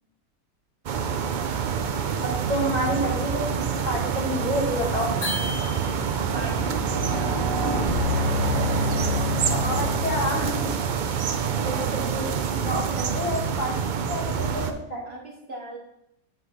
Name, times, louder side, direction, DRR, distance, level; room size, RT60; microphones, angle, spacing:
sound 1, 0.9-14.7, right 7 dB, 90° right, 0.4 m, -27 dB
voice 1, 2.2-5.1 9.5-10.7 11.6-14.6 14.9-15.1, equal, 30° left, -2 dB, 1.4 m, -29 dB
sound 2, 3.5-3.7 4.3-11.1, left 3 dB, ahead, 2.0 m, -30 dB
sound 3, 5.2-6.4, left 1 dB, 55° left, 2.1 m, -33 dB
voice 2, 6.2-7.8 15.0-15.8, right 3 dB, 50° right, 0 dB, 1.3 m, -38 dB
7.9 x 3.2 x 5.6 m, 0.79 s
omnidirectional pair, 1.5 m